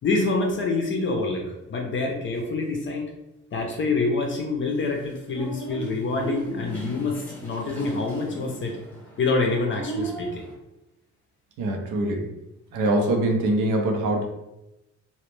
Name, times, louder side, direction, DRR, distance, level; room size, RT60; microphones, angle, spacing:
voice 1, 0.0-1.4 1.7-3.1 3.5-8.8 9.2-10.4, left 3 dB, 40° left, 1 dB, 0.4 m, -26 dB
sound 1, 4.8-10.5, right 3 dB, 5° left, 0.8 m, -36 dB
voice 2, 11.6-12.3 12.7-14.2, right 1 dB, 85° right, 2 dB, 0.5 m, -23 dB
2.1 x 2.0 x 3.0 m, 0.92 s
cardioid pair, 90°, 30 cm